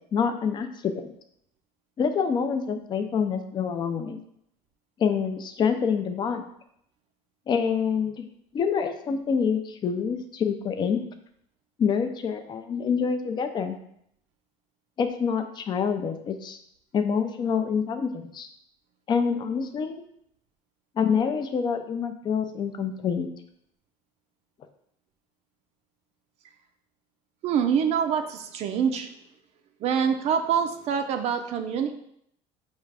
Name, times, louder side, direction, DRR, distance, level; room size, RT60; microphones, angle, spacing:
voice 1, 0.1-1.1 2.0-4.2 5.0-6.4 7.5-8.2 8.5-11.0 11.8-13.8 15.0-16.6 16.9-18.5 19.1-20.0 21.0-23.3, left 6 dB, 35° left, 7 dB, 0.4 m, -26 dB
voice 2, 27.4-29.1 29.8-31.9, right 7 dB, 55° right, 6 dB, 0.4 m, -25 dB
5.2 x 2.4 x 3.3 m, 0.71 s
cardioid pair, 115°, 13 cm